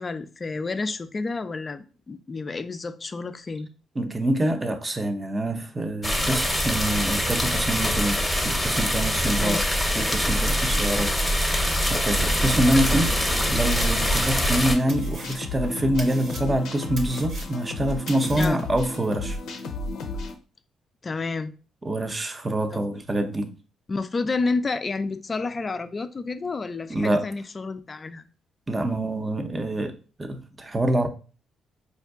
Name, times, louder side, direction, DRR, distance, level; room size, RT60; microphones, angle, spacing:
voice 1, 0.0-3.7 9.4-9.6 18.4-18.6 21.0-21.5 22.7-22.8 23.9-28.3, left 3 dB, 30° left, 0.4 m, -30 dB
voice 2, 4.0-9.7 9.9-11.2 11.5-19.4 21.8-23.5 26.9-27.3 28.7-31.1, right 1 dB, 25° right, 0.5 m, -26 dB
sound 1, 6.0-14.7, equal, 5° left, 0.8 m, -24 dB
sound 2, 12.2-20.3, left 2 dB, 80° left, 0.5 m, -33 dB
sound 3, 13.0-13.4 13.7-14.6 14.9-18.8, right 3 dB, 60° right, 0.8 m, -41 dB
4.4 x 2.6 x 2.4 m
cardioid pair, 90°, 0 cm